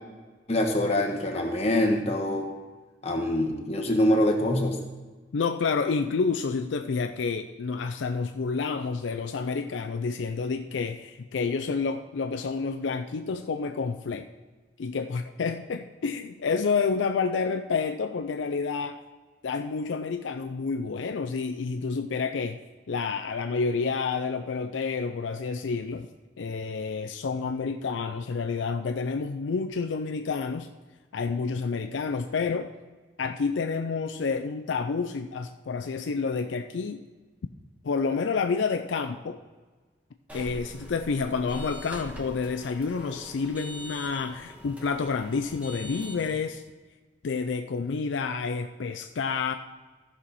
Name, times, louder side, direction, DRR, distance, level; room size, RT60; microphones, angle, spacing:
voice 1, 0.5-2.5 3.0-4.8, left 1 dB, 35° left, 2 dB, 1.2 m, -24 dB
voice 2, 5.3-14.3 14.8-19.0 19.4-22.6 22.9-26.1 26.4-30.7 31.1-32.7 33.2-37.0 37.8-39.4 40.3-46.6 47.2-49.5, left 5 dB, 75° left, 6 dB, 0.4 m, -29 dB
sound 1, 40.3-46.3, equal, 5° right, 1.3 m, -43 dB
14.5 x 5.6 x 4.2 m, 1.3 s
head